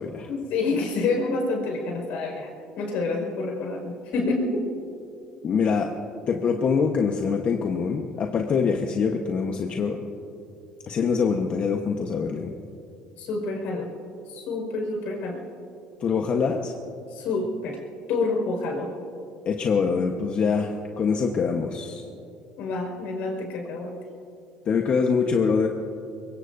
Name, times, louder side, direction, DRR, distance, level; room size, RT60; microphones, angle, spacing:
voice 1, 0.3-4.6 13.2-13.9 14.3-15.4 17.1-17.8 18.1-18.9 22.6-23.9, left 3 dB, 75° left, 1 dB, 5.1 m, -28 dB
voice 2, 5.4-5.9 6.3-10.0 10.9-12.5 16.0-16.7 19.4-22.0 24.7-25.7, left 5 dB, 45° left, 2 dB, 1.1 m, -24 dB
24.0 x 22.5 x 2.7 m, 2.6 s
cardioid pair, 105°, 3 cm